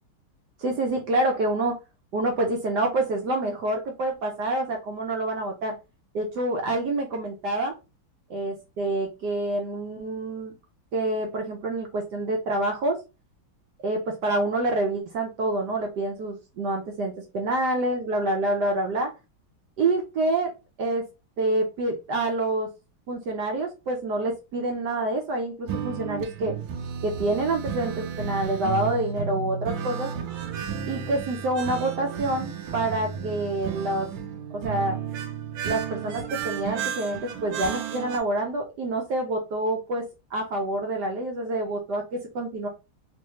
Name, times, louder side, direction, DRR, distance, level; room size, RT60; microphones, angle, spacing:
voice 1, 0.6-1.8 2.1-5.7 6.1-7.7 8.3-10.5 10.9-13.0 13.8-19.1 19.8-20.5 20.8-21.0 21.4-22.7 23.1-26.6 27.0-30.1 30.9-34.1 34.5-35.0 35.6-42.7, right 2 dB, 65° right, 2 dB, 1.2 m, -27 dB
sound 1, 25.7-38.2, right 8 dB, 90° right, 1.5 m, -33 dB
3.4 x 3.2 x 3.0 m, 0.28 s
omnidirectional pair, 2.2 m